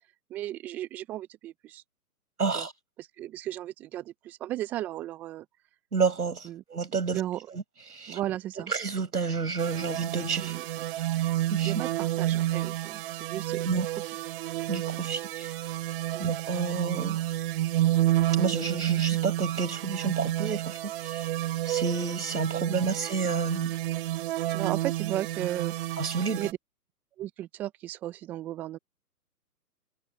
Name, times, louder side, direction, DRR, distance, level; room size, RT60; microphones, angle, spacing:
voice 1, 0.3-1.8 2.5-2.7 3.0-5.4 6.4-6.6 7.1-7.4 8.1-8.7 10.4-10.6 11.6-13.7 14.9-15.1 16.1-16.3 24.5-25.7 26.4-26.6 27.2-28.8, right 13 dB, 5° right, 0.6 m, -35 dB
voice 2, 2.4-2.7 5.9-7.2 7.5-7.6 7.9-8.2 8.6-10.6 11.0-11.1 11.5-11.7 13.7-13.9 14.7-15.5 16.2-17.2 18.4-21.3 21.7-23.7 26.0-26.5, right 5 dB, 70° right, 6.8 m, -30 dB
sound 1, 9.6-26.5, right 14 dB, 35° right, 4.5 m, -30 dB
figure-of-eight pair, 130°, 48 cm